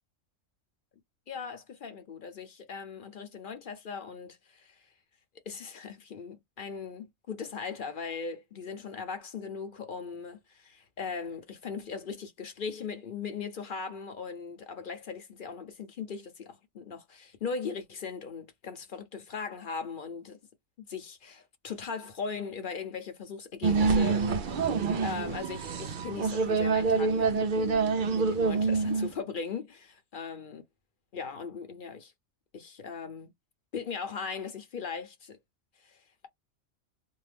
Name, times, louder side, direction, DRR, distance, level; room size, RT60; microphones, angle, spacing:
voice 1, 1.3-4.9 5.5-20.4 20.8-24.7 25.0-30.6 31.1-32.1 32.5-33.3 33.7-35.4 35.8-36.3, left 5 dB, 45° left, 0.8 m, -39 dB
sound 1, 23.6-29.1, right 4 dB, 55° right, 0.6 m, -26 dB
2.7 x 2.1 x 3.3 m
omnidirectional pair, 1.4 m